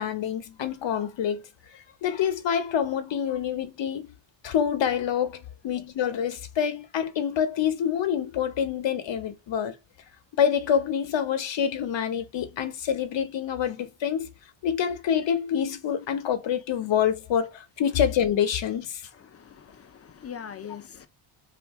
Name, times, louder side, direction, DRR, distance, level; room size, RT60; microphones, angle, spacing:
voice 1, 0.0-1.4 1.7-4.1 4.4-9.7 10.4-14.3 14.6-19.1, left 8 dB, 65° left, 0.9 m, -26 dB
voice 2, 19.3-21.1, left 8 dB, 30° left, 0.5 m, -42 dB
2.6 x 2.5 x 3.5 m
cardioid pair, 80°, 48 cm